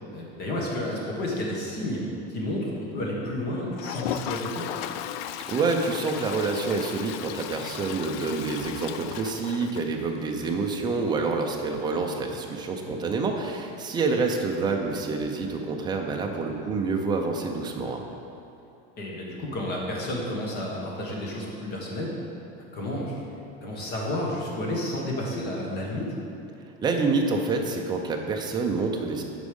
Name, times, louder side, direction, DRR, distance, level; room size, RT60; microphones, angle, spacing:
voice 1, 0.1-2.0 2.3-4.7 12.8-13.0 17.8-17.9 19.0-22.1 22.7-23.4 23.6-26.1, left 1 dB, 35° left, -2 dB, 1.5 m, -31 dB
Toilet flush, 3.7-10.4 10.8-10.9 11.1-11.2 11.4-11.5 14.1-14.2 15.5-15.6, left 11 dB, 75° left, 0.4 m, -36 dB
voice 2, 5.5-18.0 26.8-29.2, right 4 dB, 15° right, 2 dB, 0.5 m, -27 dB
8.2 x 5.3 x 5.3 m, 2.9 s
cardioid pair, 165°, 30 cm